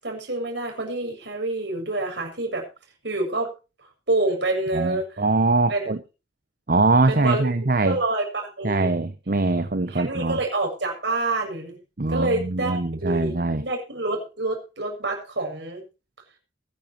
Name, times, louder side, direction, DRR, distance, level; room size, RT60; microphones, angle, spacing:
voice 1, 0.0-2.6 3.0-3.5 4.1-5.1 5.7-5.9 7.1-7.5 7.8-8.9 9.9-11.8 12.1-13.3 13.6-15.8, right 2 dB, 70° right, 6.9 m, -27 dB
voice 2, 4.7-6.0 6.7-8.0 8.6-10.4 12.0-13.6, right 3 dB, 50° right, 0.8 m, -22 dB
22.0 x 10.5 x 2.9 m
head